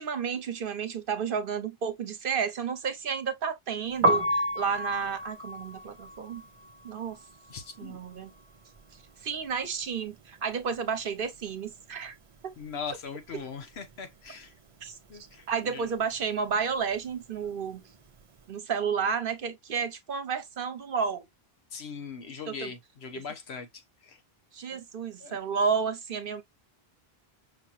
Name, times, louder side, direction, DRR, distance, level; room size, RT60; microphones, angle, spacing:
voice 1, 0.0-6.4 6.8-7.2 7.8-8.3 9.2-12.1 14.8-15.0 15.5-17.8 18.5-21.2 22.5-22.7 24.5-26.4, right 6 dB, 60° right, 1.0 m, -31 dB
Piano, 3.9-9.8 10.1-11.7 12.0-18.4, equal, 40° right, 0.5 m, -33 dB
voice 2, 7.5-8.0 12.6-14.5 15.1-15.9 21.7-24.2 24.7-24.8 25.2-25.4, left 5 dB, 90° left, 1.3 m, -40 dB
5.7 x 2.9 x 2.4 m
omnidirectional pair, 1.0 m